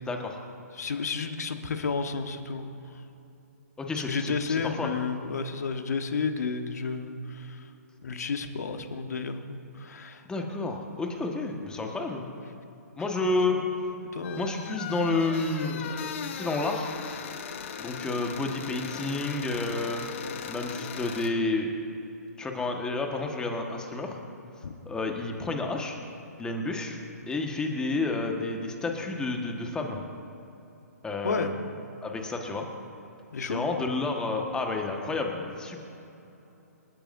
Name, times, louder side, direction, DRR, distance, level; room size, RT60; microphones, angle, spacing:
voice 1, 0.1-0.4 3.8-4.9 10.2-12.3 13.0-13.6 14.4-16.9 17.8-20.0 20.5-21.7 22.4-24.2 24.8-26.0 26.4-27.0 27.3-30.0 31.0-31.6 32.0-32.7 33.4-35.8, left 3 dB, 10° left, 2 dB, 1.5 m, -30 dB
voice 2, 0.7-2.7 4.1-7.7 8.0-10.2 13.5-13.6 14.0-14.5 24.6-24.7 31.2-31.5 33.3-33.7, left 5 dB, 70° left, 7 dB, 1.3 m, -32 dB
sound 1, 14.2-21.3, left 7 dB, 45° left, 1.1 m, -38 dB
28.0 x 10.0 x 2.7 m, 3.0 s
figure-of-eight pair, 135°, 9 cm